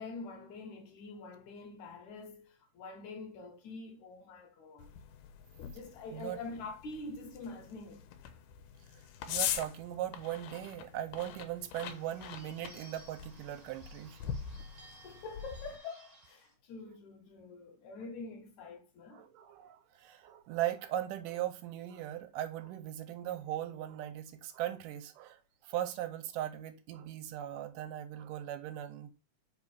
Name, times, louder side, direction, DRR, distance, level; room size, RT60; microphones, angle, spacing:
voice 1, 0.0-4.9 5.7-8.1 15.0-19.2, left 3 dB, 70° left, 2.2 m, -46 dB
sound 1, 4.8-15.8, left 9 dB, 90° left, 2.3 m, -43 dB
voice 2, 9.3-14.2 19.1-29.1, right 12 dB, 85° right, 2.3 m, -39 dB
Bird / Bell, 11.6-16.5, right 1 dB, 30° right, 0.6 m, -58 dB
5.2 x 4.2 x 4.9 m
omnidirectional pair, 3.8 m